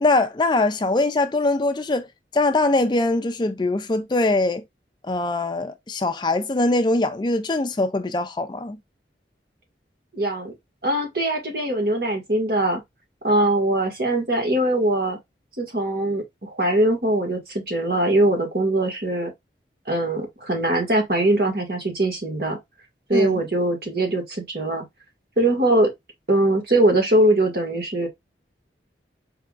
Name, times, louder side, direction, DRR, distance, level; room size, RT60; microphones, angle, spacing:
voice 1, 0.0-2.1 2.3-4.6 5.0-8.8 23.1-23.4, left 2 dB, 25° left, 0.4 m, -22 dB
voice 2, 10.1-10.5 10.8-12.8 13.2-15.2 15.6-19.3 19.9-22.6 23.1-24.8 25.4-25.9 26.3-28.1, right 1 dB, 60° right, 1.9 m, -21 dB
4.6 x 3.5 x 2.4 m
head